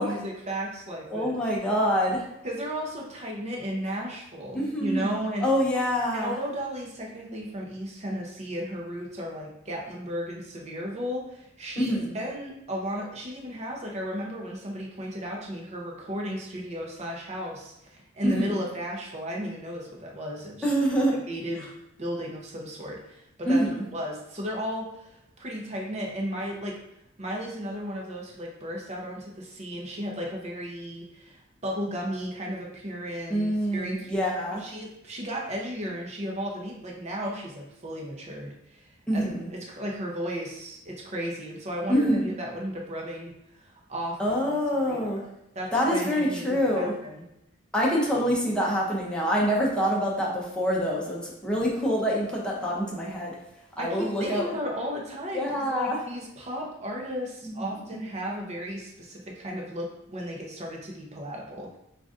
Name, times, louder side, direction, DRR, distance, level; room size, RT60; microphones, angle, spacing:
voice 1, 0.0-1.4 2.4-5.5 6.1-20.7 21.1-21.7 22.0-23.6 23.9-26.8 27.2-34.2 34.6-45.1 45.5-47.2 53.8-61.8, equal, 35° right, -2 dB, 0.8 m, -34 dB
voice 2, 1.1-2.2 4.5-6.3 11.8-12.2 18.2-18.6 20.6-21.2 23.5-23.8 33.3-34.6 39.1-39.5 41.9-42.3 44.2-45.3 45.7-46.9 47.7-53.4 53.8-54.5 55.3-56.0 57.4-57.8, equal, 5° left, -4 dB, 0.8 m, -26 dB
3.8 x 2.5 x 3.7 m, 0.82 s
head